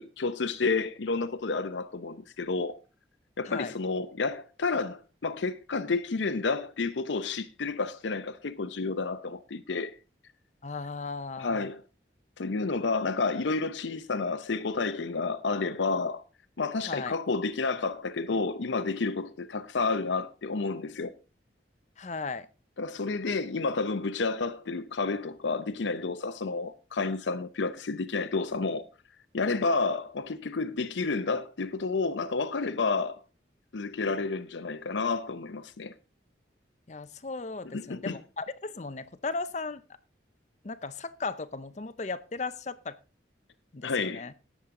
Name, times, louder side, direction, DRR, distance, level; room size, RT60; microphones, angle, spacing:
voice 1, 0.0-2.8 3.4-10.0 11.4-11.8 12.4-16.2 16.6-21.1 22.8-28.8 29.3-33.2 33.7-35.9 37.7-38.2 43.8-44.4, left 4 dB, 85° left, 0.7 m, -30 dB
voice 2, 10.6-11.6 16.8-17.1 22.0-22.5 36.9-39.8 40.6-43.0 43.7-44.3, left 4 dB, 40° left, 0.6 m, -36 dB
17.0 x 7.3 x 3.7 m
head